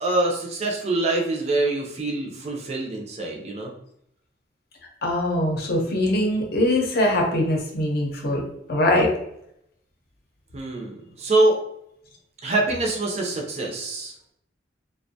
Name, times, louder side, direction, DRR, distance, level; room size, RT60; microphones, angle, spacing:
voice 1, 0.0-3.7 10.5-11.6 12.4-14.1, right 2 dB, 35° right, 0 dB, 0.4 m, -24 dB
voice 2, 5.0-8.4 8.7-9.1, left 1 dB, 55° left, 0 dB, 0.6 m, -22 dB
2.5 x 2.1 x 2.6 m, 0.74 s
head